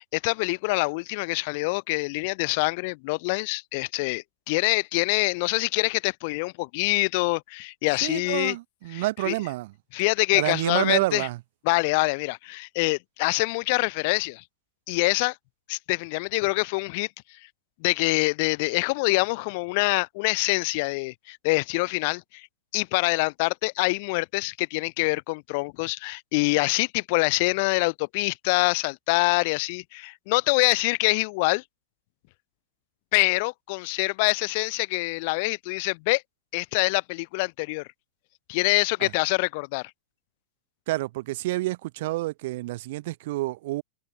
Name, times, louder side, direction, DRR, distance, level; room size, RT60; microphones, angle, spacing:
voice 1, 0.0-8.6 8.9-9.3 9.9-11.3 11.7-14.4 14.9-15.4 15.7-17.1 17.8-22.5 22.7-31.6 33.1-36.2 36.5-37.9 38.5-39.9, left 28 dB, 55° left, 1.9 m, -25 dB
voice 2, 8.0-9.7 10.3-11.4 39.0-39.1 40.9-43.8, right 18 dB, 60° right, 3.4 m, -28 dB
hypercardioid pair, 110°, 0 cm